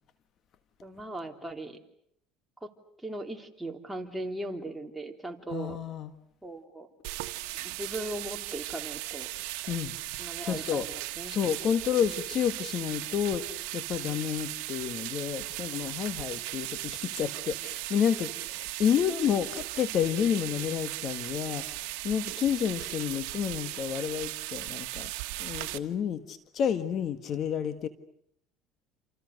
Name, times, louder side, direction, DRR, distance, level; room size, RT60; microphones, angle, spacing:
voice 1, 0.8-1.8 2.6-2.7 3.0-5.8 6.4-6.9 7.6-9.3 10.2-11.4, right 1 dB, 5° right, 2 dB, 3.4 m, -38 dB
voice 2, 5.5-6.1 9.7-9.9 10.4-10.9 11.3-21.6 22.0-25.1 25.4-27.9, left 8 dB, 50° left, 11 dB, 1.6 m, -30 dB
sound 1, 7.0-25.8, right 19 dB, 80° right, 1.4 m, -37 dB
28.5 x 28.0 x 6.6 m, 0.71 s
supercardioid pair, 100°, 0 cm